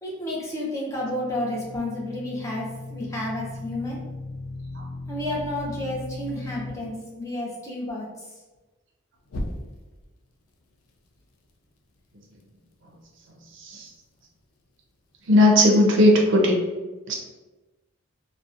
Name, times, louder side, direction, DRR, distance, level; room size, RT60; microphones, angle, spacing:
voice 1, 0.0-4.0 5.1-8.4, left 1 dB, 15° left, -5 dB, 0.5 m, -31 dB
sound 1, 1.0-6.7 9.3-10.0, left 2 dB, 85° left, 0.4 m, -36 dB
voice 2, 13.6-13.9 15.3-16.6 17.1-17.2, left 1 dB, 60° right, 0 dB, 0.5 m, -17 dB
2.6 x 2.0 x 2.4 m, 1.2 s
head